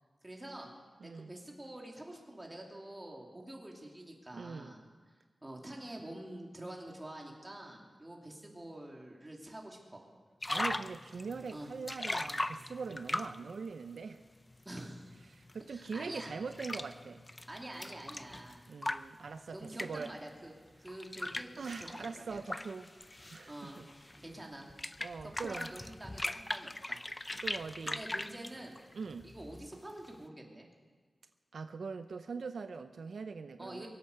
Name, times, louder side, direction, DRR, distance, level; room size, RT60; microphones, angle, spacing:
voice 1, 0.2-0.7 1.0-4.8 5.4-10.0 11.5-11.7 14.6-15.1 15.7-16.3 17.5-18.6 19.5-20.5 20.8-22.4 23.5-23.8 24.2-24.7 25.4-27.0 27.8-28.8 29.2-30.7 33.6-33.9, right 1 dB, 20° right, 0 dB, 2.7 m, -47 dB
voice 2, 1.0-1.3 4.3-4.7 10.5-14.2 15.3-17.2 18.7-20.1 21.6-22.9 23.3-23.9 25.0-25.7 27.4-28.0 28.9-29.3 31.5-33.9, right 5 dB, 85° right, 9 dB, 0.6 m, -42 dB
sound 1, 10.4-13.5 14.3-20.1 20.9-30.2, left 1 dB, 20° left, 0.5 m, -40 dB
23.5 x 8.7 x 6.6 m, 1.5 s
wide cardioid pair, 110°, 0 cm